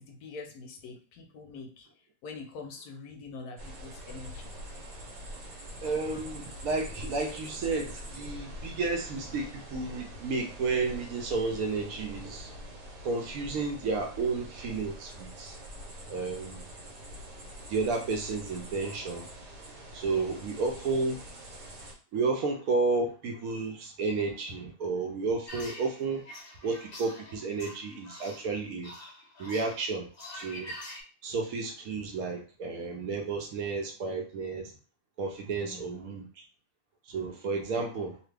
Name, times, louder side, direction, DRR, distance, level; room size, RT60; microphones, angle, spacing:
voice 1, 0.0-1.9 2.2-4.7 20.1-20.3 35.6-36.0 37.5-37.8, left 4 dB, 75° left, 4 dB, 1.0 m, -45 dB
sound 1, 3.6-21.9, equal, 90° right, 1.5 m, -45 dB
voice 2, 5.8-12.6 13.0-15.6 16.1-16.7 17.7-19.3 19.9-21.2 22.1-26.3 26.6-28.9 29.4-30.8 31.2-34.7 35.2-36.4 37.0-38.2, right 3 dB, 70° right, 2 dB, 0.9 m, -32 dB
sound 2, 25.5-31.0, left 1 dB, 50° left, 0.7 m, -45 dB
2.9 x 2.3 x 3.2 m, 0.37 s
omnidirectional pair, 1.8 m